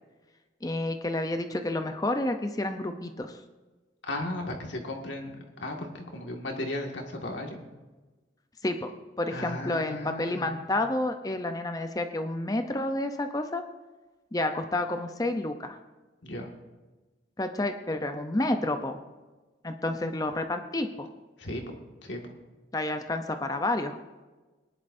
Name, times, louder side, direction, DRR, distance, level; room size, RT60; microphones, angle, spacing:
voice 1, 0.6-3.4 8.6-13.6 14.3-15.8 17.4-19.0 19.6-21.1 22.7-23.9, left 2 dB, 20° left, 6 dB, 0.6 m, -30 dB
voice 2, 4.1-7.6 9.3-10.5 16.2-16.5 19.9-20.1 21.4-21.7 22.0-22.2, left 1 dB, 85° left, 2 dB, 2.0 m, -36 dB
20.0 x 11.0 x 2.6 m, 1.2 s
head